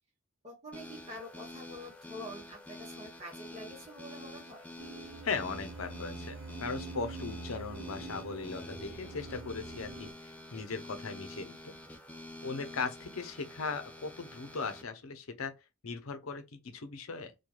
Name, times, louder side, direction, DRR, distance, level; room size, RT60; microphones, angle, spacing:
voice 1, 0.4-4.7, equal, 30° right, 0.9 m, -46 dB
sound 1, 0.7-14.8, left 1 dB, 5° left, 0.4 m, -47 dB
sound 2, 4.8-10.1, right 4 dB, 80° right, 0.7 m, -46 dB
voice 2, 5.2-11.7 12.4-15.5 15.8-17.3, left 4 dB, 80° left, 0.7 m, -38 dB
3.1 x 2.3 x 2.3 m
head